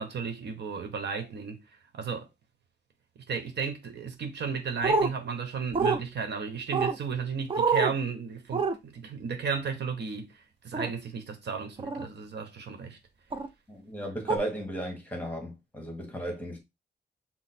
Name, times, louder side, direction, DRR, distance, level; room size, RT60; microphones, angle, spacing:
voice 1, 0.0-1.6 1.9-2.3 3.3-13.0, right 5 dB, 75° right, 1.0 m, -34 dB
sound 1, 4.8-5.1 5.7-6.0 6.7-7.0 7.5-7.9 8.5-8.7 10.7-10.9 11.8-12.0 13.3-13.5 14.3-14.4, right 4 dB, 30° right, 0.5 m, -26 dB
voice 2, 13.7-16.6, right 1 dB, 10° left, 1.3 m, -35 dB
6.1 x 2.0 x 4.2 m
wide cardioid pair, 150°, 18 cm